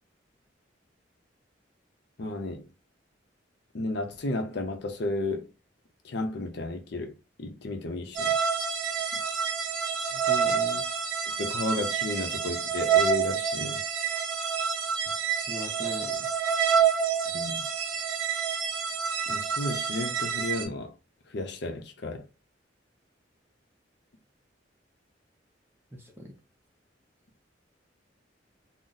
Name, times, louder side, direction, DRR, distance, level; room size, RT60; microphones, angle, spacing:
voice 1, 2.2-2.7 3.7-5.5 6.0-8.4 9.1-9.2 11.4-13.8 17.3-17.7 19.3-20.9 21.3-22.3, left 2 dB, 65° left, 0.6 m, -33 dB
sound 1, 8.1-20.6, right 7 dB, 80° right, 0.6 m, -28 dB
voice 2, 10.1-10.9 15.5-16.3 25.9-26.3, left 1 dB, 10° right, 0.6 m, -40 dB
2.6 x 2.0 x 3.8 m
head